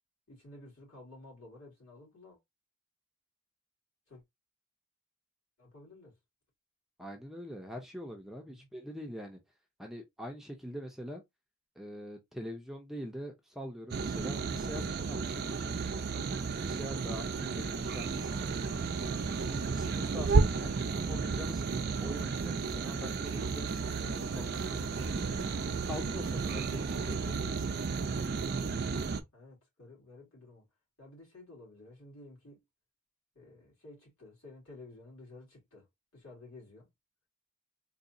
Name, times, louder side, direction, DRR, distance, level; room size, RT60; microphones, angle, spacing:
voice 1, 0.3-2.4 4.1-4.2 5.6-6.1 8.4-8.7 28.3-30.7 31.0-32.6 33.3-35.9 36.1-36.9, left 2 dB, 65° left, 2.7 m, -53 dB
voice 2, 7.0-9.4 9.8-11.2 11.8-15.9 16.4-18.5 19.5-20.8 21.1-25.3 25.9-27.9, equal, ahead, 0.6 m, -44 dB
sound 1, 13.9-29.2, right 4 dB, 45° right, 0.5 m, -33 dB
sound 2, 17.9-27.3, right 5 dB, 85° right, 0.7 m, -48 dB
4.0 x 2.7 x 2.6 m
head